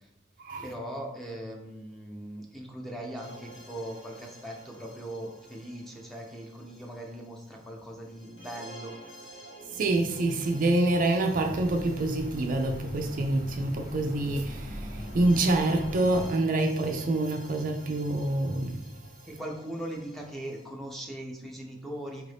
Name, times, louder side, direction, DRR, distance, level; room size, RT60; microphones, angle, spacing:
voice 1, 0.6-8.9 19.3-22.3, right 1 dB, ahead, 0.6 m, -40 dB
sound 1, 3.1-20.6, right 1 dB, 85° left, 1.2 m, -50 dB
voice 2, 9.7-18.8, right 2 dB, 45° right, 0.3 m, -26 dB
sound 2, 11.3-16.3, equal, 45° left, 0.8 m, -40 dB
4.7 x 2.6 x 3.3 m
head